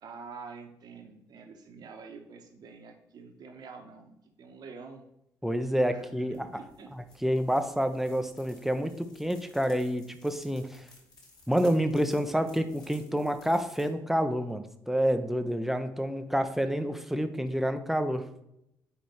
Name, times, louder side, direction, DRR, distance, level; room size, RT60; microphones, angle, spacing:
voice 1, 0.0-5.0 5.9-6.9, right 5 dB, 50° right, 3 dB, 1.0 m, -47 dB
voice 2, 5.4-6.5 7.2-10.9 11.5-18.3, equal, 5° right, 8 dB, 0.6 m, -28 dB
sound 1, 5.9-13.9, left 2 dB, 45° left, 2.3 m, -58 dB
8.2 x 5.0 x 3.0 m, 0.82 s
figure-of-eight pair, 45°, 9 cm